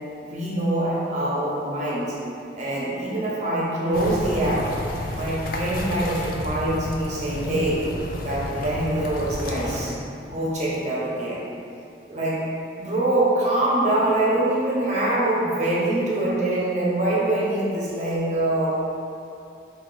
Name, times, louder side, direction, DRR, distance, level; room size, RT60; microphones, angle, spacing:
voice 1, 0.2-2.2 2.6-4.8 5.1-7.9 8.2-10.0 10.3-11.5 12.1-12.5 12.8-18.7, right 1 dB, 40° right, -7 dB, 0.9 m, -24 dB
sound 1, 3.9-9.8, left 1 dB, 50° left, 0.5 m, -31 dB
4.4 x 2.8 x 3.9 m, 2.6 s
head